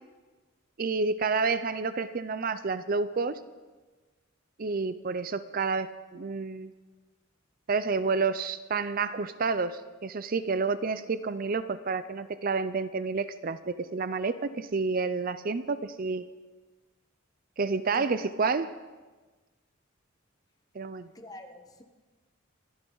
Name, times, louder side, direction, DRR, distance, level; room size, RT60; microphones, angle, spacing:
voice 1, 0.8-3.4 4.6-6.7 7.7-16.2 17.6-18.7 20.7-21.1, right 4 dB, 40° right, 0.5 m, -29 dB
voice 2, 17.9-18.3 21.1-21.8, left 1 dB, 15° left, 1.1 m, -46 dB
25.5 x 12.5 x 3.9 m
head